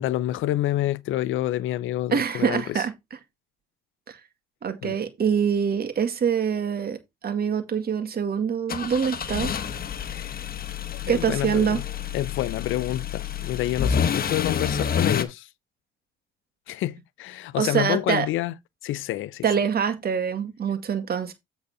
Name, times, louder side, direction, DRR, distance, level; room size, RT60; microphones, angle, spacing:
voice 1, 0.0-2.8 4.8-5.0 10.0-10.4 11.0-11.8 12.1-15.5 16.7-18.5 18.8-19.4, left 14 dB, 80° left, 0.6 m, -28 dB
voice 2, 2.1-2.9 4.1-4.2 4.6-7.0 7.2-9.5 11.1-11.8 17.6-18.3 19.4-21.3, right 7 dB, 50° right, 2.0 m, -25 dB
sound 1, 8.7-15.2, left 7 dB, 50° left, 1.1 m, -28 dB
8.4 x 4.0 x 5.4 m
cardioid pair, 90°, 20 cm